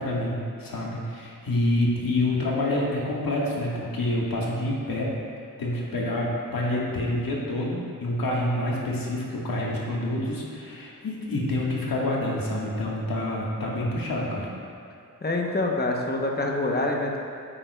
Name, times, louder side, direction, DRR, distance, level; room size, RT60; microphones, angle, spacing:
voice 1, 0.0-5.1 5.6-14.5, left 1 dB, 80° left, -4 dB, 1.6 m, -27 dB
voice 2, 15.2-17.2, left 2 dB, 30° left, 1 dB, 0.8 m, -26 dB
9.1 x 8.8 x 2.3 m, 2.5 s
wide cardioid pair, 120°, 34 cm